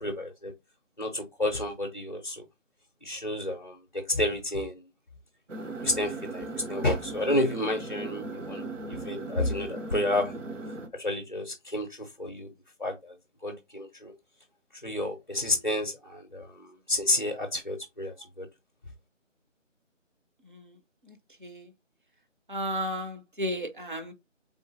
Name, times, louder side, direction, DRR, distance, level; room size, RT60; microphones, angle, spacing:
voice 1, 0.0-0.5 1.0-2.4 3.0-4.7 5.8-10.3 11.0-11.9 12.2-12.5 12.8-13.1 13.4-14.1 14.8-16.5 16.9-18.5, left 1 dB, 40° left, 0.5 m, -30 dB
sound 1, 5.5-10.9, right 3 dB, 75° right, 0.8 m, -38 dB
voice 2, 22.5-24.1, equal, 40° right, 0.7 m, -33 dB
3.8 x 3.7 x 2.6 m
figure-of-eight pair, 175°, 38 cm